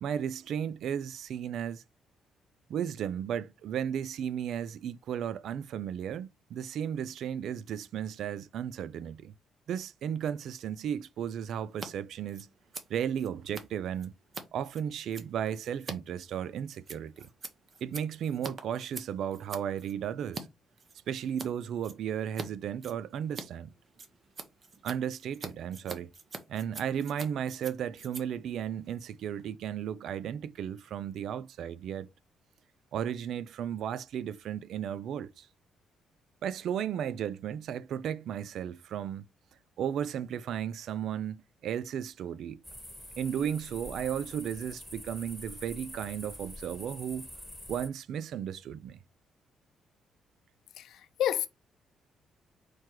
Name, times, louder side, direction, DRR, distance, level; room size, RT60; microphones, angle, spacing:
voice 1, 0.0-1.8 2.7-9.3 9.7-12.5 12.9-14.1 14.5-17.3 17.8-20.5 21.1-23.7 24.8-26.1 26.5-32.1 32.9-35.5 36.4-39.2 39.8-42.6 43.2-47.3 47.7-49.0, right 9 dB, 70° right, 0.3 m, -34 dB
Scissors, 11.7-11.9 12.1-20.4 20.8-21.5 21.8-22.5 22.7-29.5, right 4 dB, 45° right, 0.9 m, -45 dB
sound 1, 42.6-47.9, left 1 dB, ahead, 1.2 m, -46 dB
voice 2, 50.8-51.5, left 11 dB, 80° left, 0.5 m, -30 dB
4.4 x 2.2 x 4.6 m
cardioid pair, 90°, 0 cm